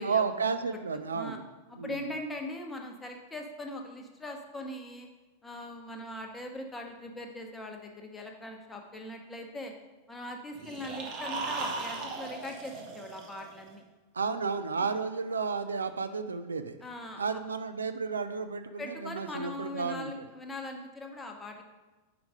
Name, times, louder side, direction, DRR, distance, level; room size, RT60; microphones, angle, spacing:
voice 1, 0.0-1.4 1.8-2.0 14.1-16.8 17.2-20.1, right 5 dB, 75° right, 9 dB, 0.3 m, -32 dB
voice 2, 1.7-5.1 5.4-9.7 10.1-13.8 16.8-17.4 18.8-21.6, left 1 dB, 10° left, 2 dB, 0.8 m, -41 dB
sound 1, 10.5-13.7, right 3 dB, 40° right, 1.0 m, -37 dB
4.9 x 4.7 x 5.1 m, 1.2 s
figure-of-eight pair, 90°, 0 cm